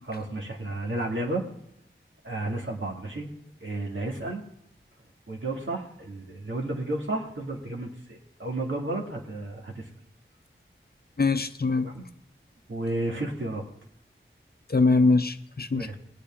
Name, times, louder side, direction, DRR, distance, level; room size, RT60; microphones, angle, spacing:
voice 1, 0.0-1.4 2.2-3.3 3.6-4.4 5.3-9.9 11.8-12.0 12.7-13.6 15.7-16.0, right 2 dB, 70° right, 0 dB, 2.2 m, -32 dB
voice 2, 11.2-11.9 14.7-16.0, left 3 dB, 50° left, 10 dB, 0.7 m, -23 dB
21.0 x 8.5 x 3.7 m, 0.75 s
wide cardioid pair, 55°, 21 cm